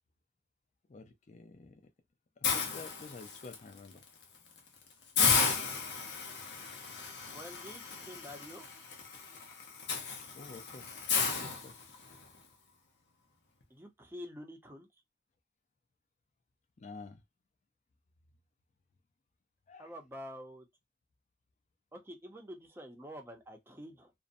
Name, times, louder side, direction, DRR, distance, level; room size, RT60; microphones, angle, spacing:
voice 1, 0.9-1.9 2.4-4.0 10.3-11.3 11.6-11.8 16.8-17.2 19.7-19.9, left 3 dB, 45° left, 0.4 m, -50 dB
Hiss, 2.4-3.5 4.0-4.2 4.6-4.7 5.2-12.2, left 5 dB, 80° left, 0.6 m, -33 dB
voice 2, 7.3-8.7 13.7-14.9 19.8-20.6 21.9-24.1, equal, 15° right, 0.5 m, -47 dB
2.6 x 2.0 x 2.5 m
head